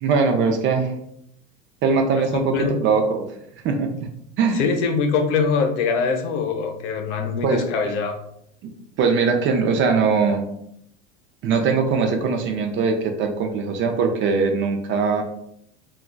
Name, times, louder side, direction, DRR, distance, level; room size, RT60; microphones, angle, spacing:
voice 1, 0.0-0.9 1.8-3.2 3.6-4.1 4.4-4.6 7.2-7.7 9.0-10.4 11.4-15.2, right 5 dB, 35° right, 5 dB, 0.5 m, -21 dB
voice 2, 4.6-8.1, left 5 dB, 75° left, 4 dB, 0.7 m, -23 dB
3.6 x 2.3 x 2.2 m, 0.73 s
supercardioid pair, 110°, 35 cm